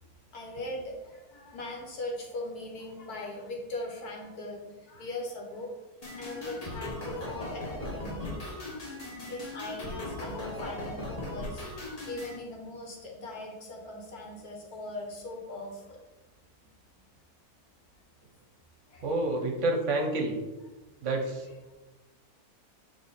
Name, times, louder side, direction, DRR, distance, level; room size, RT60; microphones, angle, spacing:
voice 1, 0.3-5.7 6.2-8.4 9.2-16.0 18.9-19.2 21.2-21.7, left 2 dB, 85° left, -1 dB, 1.8 m, -40 dB
sound 1, 6.0-12.4, left 1 dB, 30° left, 0.9 m, -38 dB
voice 2, 19.0-20.4 21.0-21.4, right 2 dB, 60° right, 3 dB, 1.1 m, -28 dB
6.8 x 3.5 x 4.1 m, 1.1 s
omnidirectional pair, 1.6 m